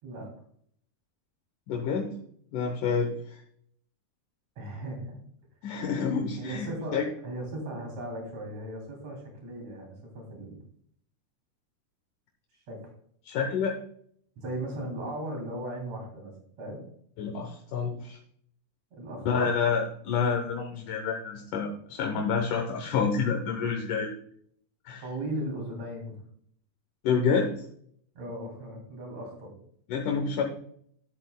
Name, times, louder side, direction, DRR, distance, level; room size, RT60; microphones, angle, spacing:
voice 1, 1.7-2.1 2.5-3.4 5.6-6.7 6.9-7.1 13.3-13.8 17.2-18.2 19.3-24.1 24.9-25.0 27.0-27.5 29.9-30.4, left 5 dB, 75° left, 2 dB, 2.4 m, -28 dB
voice 2, 4.6-5.2 6.4-10.6 12.5-12.8 14.4-16.3 16.6-16.8 18.9-19.5 23.5-23.6 25.0-26.2 28.2-29.5, right 1 dB, 55° right, 1 dB, 4.1 m, -37 dB
12.5 x 8.0 x 2.2 m, 0.64 s
omnidirectional pair, 3.7 m